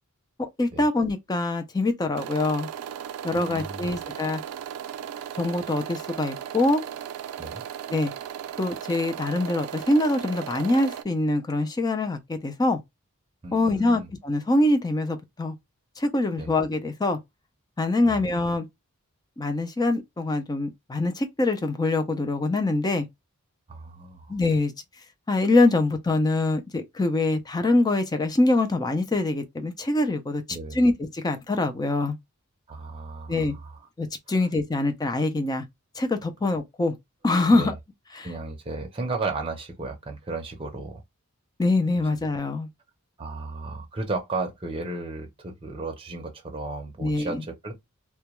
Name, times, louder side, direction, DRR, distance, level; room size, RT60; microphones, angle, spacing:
voice 1, 0.4-2.7 3.2-4.4 5.4-6.8 7.9-8.1 8.6-12.8 13.5-15.5 16.0-17.2 17.8-18.7 19.4-23.1 24.3-24.7 25.3-30.4 30.7-32.2 33.3-33.5 34.0-35.7 36.0-36.9 37.2-37.7 38.1-38.3 41.6-42.7 47.0-47.4, left 2 dB, 20° left, 0.4 m, -24 dB
sound 1, 2.1-11.0, right 9 dB, 90° right, 0.3 m, -36 dB
voice 2, 3.3-4.0 7.4-7.6 13.4-14.1 16.4-16.5 18.0-18.2 23.7-24.3 30.5-30.8 32.7-33.7 37.5-37.7 38.2-41.0 43.2-47.7, right 3 dB, 25° right, 0.6 m, -34 dB
2.2 x 2.2 x 2.9 m
head